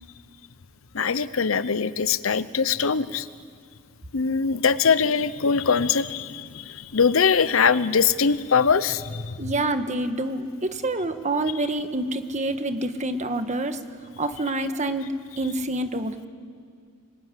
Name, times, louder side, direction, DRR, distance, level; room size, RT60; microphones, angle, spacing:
voice 1, 0.9-3.3 4.1-9.4, left 6 dB, 70° left, 16 dB, 0.8 m, -22 dB
voice 2, 9.4-13.8 14.2-16.1, right 2 dB, 35° right, 8 dB, 1.4 m, -27 dB
25.0 x 22.0 x 9.8 m, 2.1 s
head